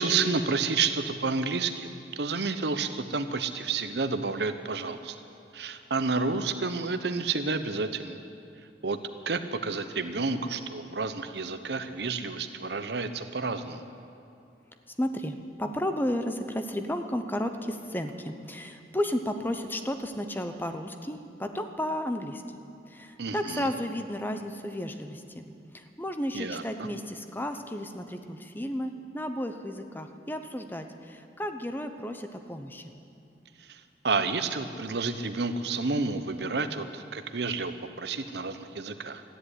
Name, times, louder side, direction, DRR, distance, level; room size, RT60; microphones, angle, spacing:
voice 1, 0.0-5.2 5.5-8.2 8.8-9.0 9.3-13.8 23.2-23.7 26.3-26.6 33.6-39.2, right 4 dB, 70° right, 10 dB, 0.9 m, -30 dB
voice 2, 15.0-22.4 22.9-25.5 25.7-32.9, left 1 dB, 10° left, 7 dB, 0.8 m, -33 dB
14.0 x 10.0 x 9.9 m, 2.7 s
head